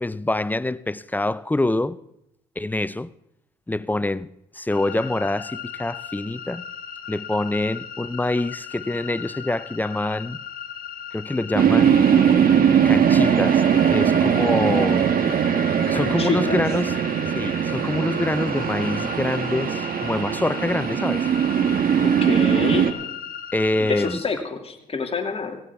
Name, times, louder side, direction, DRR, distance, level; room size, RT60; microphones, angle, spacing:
voice 1, 0.0-2.0 2.6-3.1 3.7-6.6 7.1-10.4 11.1-12.0 12.8-15.1 15.9-16.9 17.3-21.3 23.5-24.2, left 2 dB, 10° left, 0.5 m, -25 dB
sound 1, 4.7-24.2, left 8 dB, 60° left, 1.5 m, -37 dB
sound 2, 11.6-22.9, right 8 dB, 55° right, 1.3 m, -20 dB
voice 2, 15.9-16.6 22.0-22.9 23.8-25.6, left 4 dB, 35° left, 2.4 m, -27 dB
18.0 x 15.5 x 3.5 m
hypercardioid pair, 55°, 17 cm